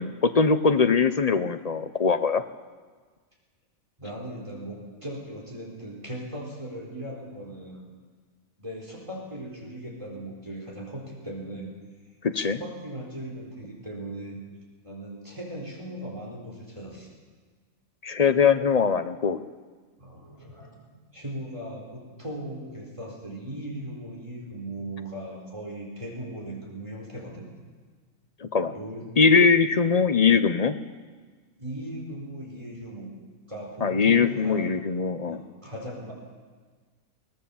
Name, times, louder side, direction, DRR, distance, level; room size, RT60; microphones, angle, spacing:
voice 1, 0.0-2.4 12.2-12.6 18.0-19.4 28.4-28.7 29.2-30.8 33.8-35.4, left 5 dB, 40° left, 10 dB, 0.7 m, -21 dB
voice 2, 4.0-7.8 8.6-11.7 12.3-14.4 14.8-17.1 20.0-27.5 28.6-29.0 31.6-33.1 33.5-34.7 35.3-36.1, right 1 dB, 20° right, -2 dB, 4.4 m, -38 dB
23.0 x 18.0 x 7.1 m, 1.5 s
omnidirectional pair, 1.4 m